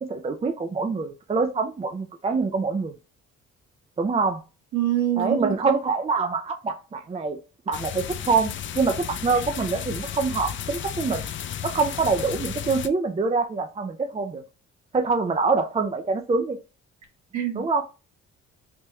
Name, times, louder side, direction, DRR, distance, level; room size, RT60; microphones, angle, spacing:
voice 1, 0.0-2.9 4.0-4.4 5.2-7.4 7.7-11.3 11.6-14.4 14.9-16.6 17.6-17.8, right 4 dB, 20° right, 0.4 m, -25 dB
voice 2, 4.7-5.6 17.3-17.8, right 11 dB, 65° right, 1.5 m, -25 dB
sound 1, 7.7-12.9, left 9 dB, 40° left, 0.4 m, -33 dB
3.4 x 2.9 x 3.0 m
cardioid pair, 90°, 30 cm